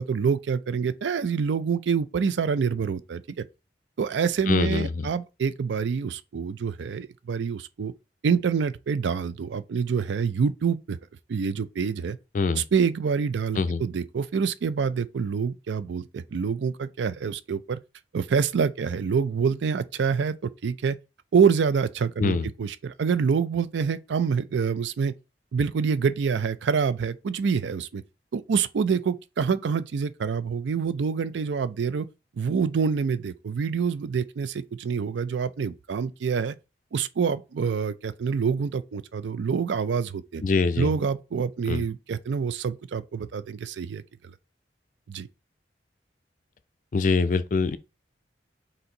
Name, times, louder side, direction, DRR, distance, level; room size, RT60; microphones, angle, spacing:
voice 1, 0.0-3.4 4.0-7.9 8.2-11.0 11.3-12.2 12.5-17.8 18.1-21.0 21.3-25.1 25.5-28.0 28.3-32.1 32.4-36.6 36.9-40.4 40.8-44.3 45.1-45.3, right 6 dB, 80° right, 0.4 m, -26 dB
voice 2, 4.5-5.1 12.3-12.6 13.5-13.8 22.2-22.5 40.4-40.9 41.7-41.9 46.9-47.8, left 4 dB, 45° left, 0.4 m, -24 dB
4.2 x 2.6 x 3.8 m
head